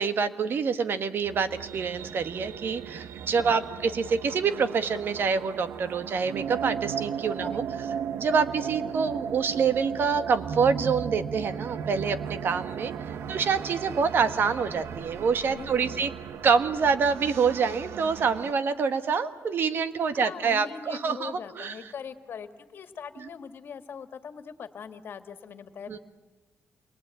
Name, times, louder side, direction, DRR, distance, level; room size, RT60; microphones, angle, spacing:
voice 1, 0.0-7.9 8.2-16.1 16.4-21.8 23.2-23.3 25.9-26.0, right 5 dB, 60° right, 11 dB, 1.5 m, -26 dB
sound 1, 1.3-18.5, right 8 dB, 85° right, 0.8 m, -36 dB
voice 2, 15.5-16.0 20.1-26.0, left 6 dB, 60° left, 9 dB, 1.9 m, -41 dB
28.5 x 22.5 x 9.1 m, 1.3 s
cardioid pair, 125°, 4 cm